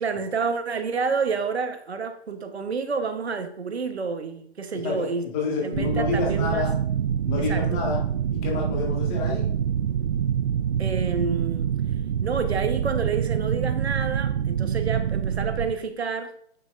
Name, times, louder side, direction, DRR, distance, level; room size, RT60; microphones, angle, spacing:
voice 1, 0.0-5.2 5.6-6.7 7.4-7.8 10.8-11.7 12.2-16.3, right 5 dB, 75° right, 8 dB, 1.2 m, -29 dB
voice 2, 4.8-6.7 7.3-8.0 8.3-9.5, left 4 dB, 20° left, -1 dB, 1.7 m, -28 dB
sound 1, 5.7-15.7, right 8 dB, 50° right, 0.4 m, -26 dB
8.9 x 6.2 x 2.6 m, 0.65 s
figure-of-eight pair, 135°, 33 cm